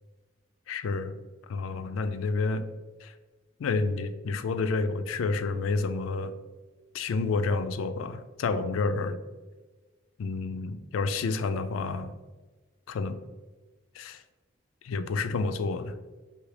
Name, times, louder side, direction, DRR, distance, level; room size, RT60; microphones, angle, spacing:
voice 1, 0.7-1.2 1.5-2.7 3.0-3.1 3.6-6.3 6.9-9.2 10.2-12.1 12.9-13.2 14.0-14.2 14.8-15.9, left 3 dB, 90° left, 11 dB, 0.4 m, -29 dB
4.9 x 2.8 x 3.2 m, 1.3 s
head